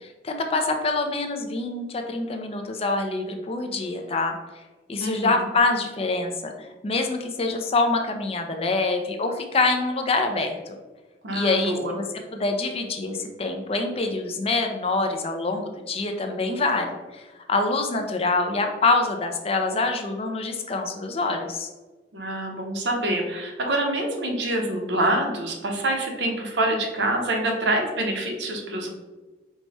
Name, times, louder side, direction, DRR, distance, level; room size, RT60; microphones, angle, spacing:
voice 1, 0.0-4.3 4.9-10.7 11.3-12.0 12.3-21.7, left 3 dB, 35° left, 4 dB, 0.5 m, -25 dB
voice 2, 5.0-5.5 11.2-11.9 22.1-28.9, right 1 dB, 80° right, 1 dB, 0.8 m, -26 dB
4.6 x 2.2 x 4.1 m, 1.2 s
head